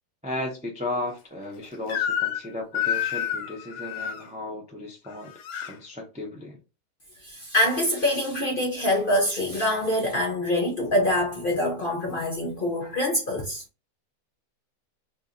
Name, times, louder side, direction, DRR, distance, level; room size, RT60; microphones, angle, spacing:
voice 1, 0.2-5.3 5.6-6.6, left 2 dB, 10° right, 0.4 m, -35 dB
Crying sobbing / Screech, 1.9-2.5 2.7-4.2 5.1-5.7, left 9 dB, 85° left, 1.2 m, -29 dB
voice 2, 7.2-13.6, left 1 dB, 45° left, 0.7 m, -25 dB
2.9 x 2.7 x 3.7 m
omnidirectional pair, 1.7 m